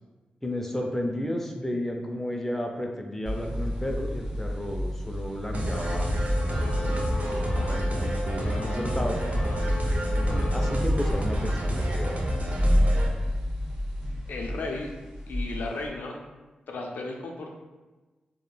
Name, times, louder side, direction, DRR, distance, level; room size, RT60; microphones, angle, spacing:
voice 1, 0.4-6.1 6.8-7.4 7.7-9.2 10.2-12.2, left 1 dB, 10° left, 2 dB, 0.4 m, -33 dB
sound 1, 3.3-15.9, equal, 15° right, 0.8 m, -30 dB
sound 2, 5.5-13.1, equal, 50° right, 0.5 m, -29 dB
sound 3, 5.7-10.8, left 1 dB, 50° left, 0.7 m, -36 dB
voice 2, 14.3-14.9 15.3-16.2 16.7-17.5, left 3 dB, 75° left, 1 dB, 0.4 m, -34 dB
2.9 x 2.1 x 2.2 m, 1.2 s
supercardioid pair, 45°, 3 cm